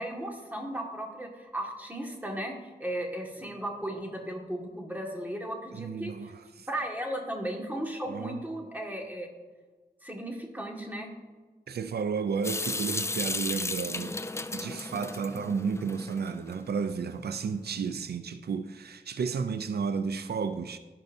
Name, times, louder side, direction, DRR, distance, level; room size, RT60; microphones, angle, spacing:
voice 1, 0.0-2.5 2.8-6.1 6.7-9.3 10.0-11.1, right 1 dB, 10° right, 1.7 m, -35 dB
voice 2, 5.7-6.7 8.1-8.4 11.7-14.2 14.5-20.8, right 5 dB, 90° right, 0.4 m, -32 dB
Water tap faucet / Sink (filling or washing) / Drip, 12.4-16.5, left 2 dB, 15° left, 0.4 m, -34 dB
16.0 x 5.4 x 2.7 m
wide cardioid pair, 75°, 16 cm